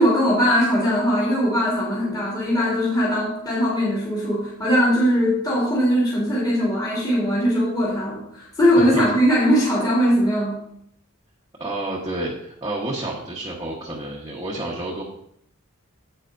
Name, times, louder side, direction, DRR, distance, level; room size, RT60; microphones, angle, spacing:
voice 1, 0.0-10.6, equal, 20° left, -7 dB, 2.7 m, -20 dB
voice 2, 11.6-15.0, right 1 dB, 20° right, -5 dB, 1.2 m, -30 dB
9.8 x 8.2 x 2.6 m, 0.72 s
head